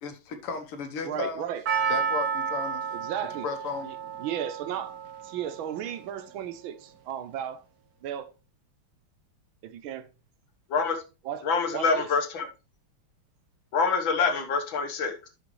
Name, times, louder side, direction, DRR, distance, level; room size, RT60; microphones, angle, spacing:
voice 1, 0.0-1.5 1.9-2.9 3.4-3.9, left 5 dB, 85° left, 2.1 m, -34 dB
voice 2, 1.0-1.6 2.9-3.5 3.8-4.9 5.2-7.6 8.0-8.3 9.6-10.1 11.2-11.5 11.7-12.1, right 10 dB, 70° right, 1.4 m, -34 dB
Percussion, 1.7-6.0 6.3-6.4, right 6 dB, 55° right, 1.3 m, -31 dB
voice 3, 11.4-12.5 13.7-15.3, left 5 dB, 65° left, 1.9 m, -26 dB
11.0 x 6.2 x 3.1 m
omnidirectional pair, 2.4 m